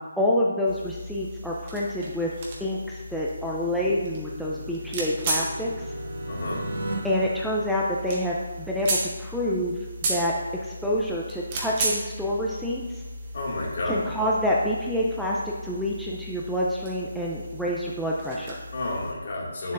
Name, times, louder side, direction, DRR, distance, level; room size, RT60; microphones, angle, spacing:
voice 1, 0.2-2.3 2.6-5.7 7.0-9.8 10.1-10.3 10.6-13.0 13.9-18.6, left 1 dB, ahead, -6 dB, 0.5 m, -27 dB
sound 1, 0.7-19.1, right 2 dB, 30° right, 1.4 m, -35 dB
sound 2, 3.0-8.7, right 1 dB, 65° right, 2.1 m, -37 dB
voice 2, 6.3-6.6 13.3-14.0 18.7-19.7, left 2 dB, 50° left, -3 dB, 2.1 m, -30 dB
9.4 x 7.2 x 2.5 m, 1.4 s
figure-of-eight pair, 150°, 0 cm